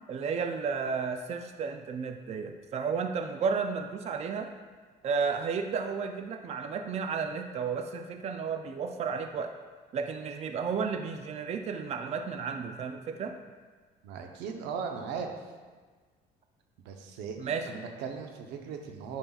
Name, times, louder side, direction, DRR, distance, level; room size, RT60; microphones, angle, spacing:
voice 1, 0.1-4.5 5.0-9.5 9.9-13.3 17.4-17.8, right 5 dB, 40° right, 5 dB, 0.4 m, -32 dB
voice 2, 14.0-15.4 16.8-17.4 17.7-19.2, right 6 dB, 90° right, 4 dB, 0.8 m, -38 dB
8.8 x 5.6 x 2.4 m, 1.4 s
cardioid pair, 110°, 17 cm